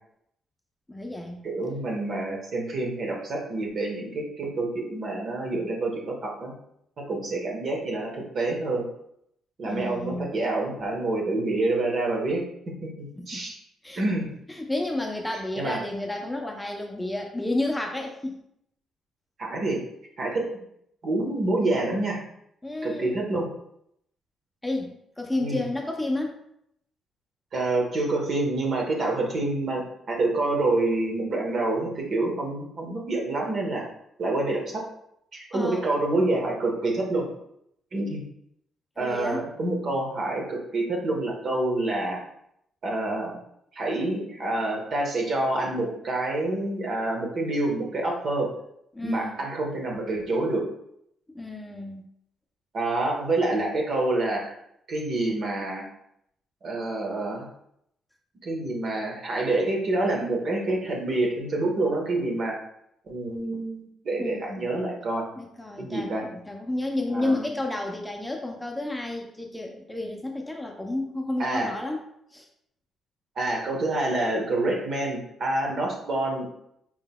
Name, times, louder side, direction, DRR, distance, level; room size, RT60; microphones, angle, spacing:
voice 1, 0.9-1.4 9.6-10.3 13.2-13.4 13.8-14.0 14.6-18.4 22.6-23.2 24.6-26.4 35.5-35.8 39.0-39.5 48.9-49.4 51.3-52.1 64.2-64.7 65.4-72.0 72.3-72.5, left 2 dB, 10° left, 1 dB, 0.6 m, -31 dB
voice 2, 1.4-6.5 7.0-8.9 9.6-12.4 12.8-13.6 14.0-14.3 15.6-15.8 19.4-19.8 20.2-20.4 21.0-22.2 22.8-23.5 25.4-25.6 27.5-33.8 34.2-34.8 35.3-37.3 37.9-38.2 39.0-42.2 42.8-43.4 43.7-48.5 49.0-50.6 52.7-54.5 54.9-55.9 56.6-57.5 58.4-62.6 63.1-65.3 65.8-66.3 67.1-67.4 71.4-71.7 73.4-76.5, right 2 dB, 55° right, 0 dB, 1.1 m, -27 dB
4.6 x 3.8 x 2.2 m, 0.74 s
cardioid pair, 90°, 0 cm